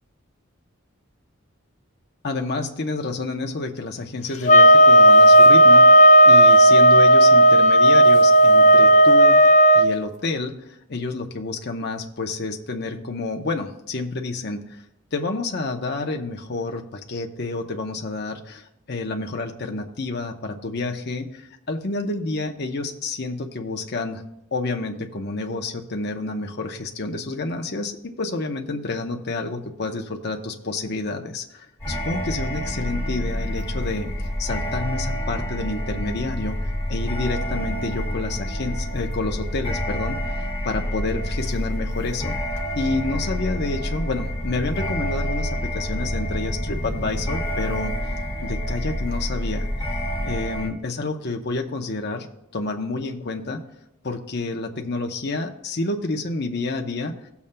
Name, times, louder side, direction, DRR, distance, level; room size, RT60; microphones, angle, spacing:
voice 1, 2.2-9.4 9.7-14.8 15.1-24.2 24.5-34.1 34.4-36.6 36.9-42.4 42.8-47.9 48.4-49.7 50.2-52.3 52.5-53.6 54.0-57.1, left 3 dB, 55° left, 3 dB, 0.8 m, -29 dB
sound 1, 4.5-9.9, right 1 dB, 35° left, 0.4 m, -11 dB
sound 2, 31.8-50.7, left 1 dB, 10° left, 2.6 m, -28 dB
17.5 x 7.0 x 2.2 m, 0.82 s
head